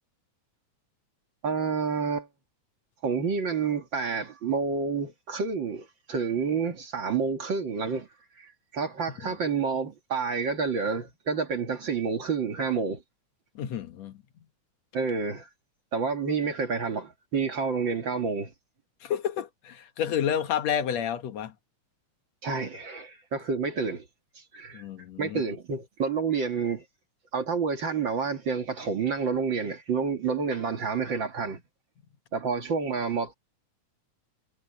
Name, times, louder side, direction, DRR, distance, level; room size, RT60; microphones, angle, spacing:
voice 1, 1.4-2.3 3.0-8.1 8.4-13.0 14.9-15.5 15.9-18.5 22.4-24.1 24.4-24.8 25.2-26.8 27.3-31.6 32.3-33.3, right 5 dB, 45° right, 2.1 m, -29 dB
voice 2, 13.6-14.1 19.0-21.5 24.7-25.4, left 9 dB, 65° left, 2.4 m, -30 dB
omnidirectional pair, 3.4 m